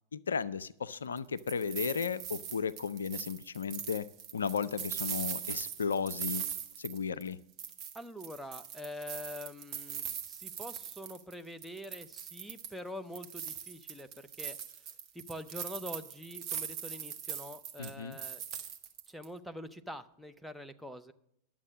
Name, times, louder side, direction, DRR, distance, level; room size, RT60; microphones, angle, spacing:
voice 1, 0.1-4.1 4.3-6.4 6.8-7.4 17.8-18.2, left 6 dB, 70° left, 16 dB, 0.3 m, -34 dB
sound 1, 1.2-7.3 7.6-11.3 11.6-12.8 13.1-19.2, right 8 dB, 35° right, 1.0 m, -41 dB
voice 2, 7.9-14.6 15.1-18.4 19.1-21.1, left 1 dB, ahead, 8 dB, 0.6 m, -45 dB
11.0 x 7.3 x 6.2 m, 0.75 s
figure-of-eight pair, 90°, 0 cm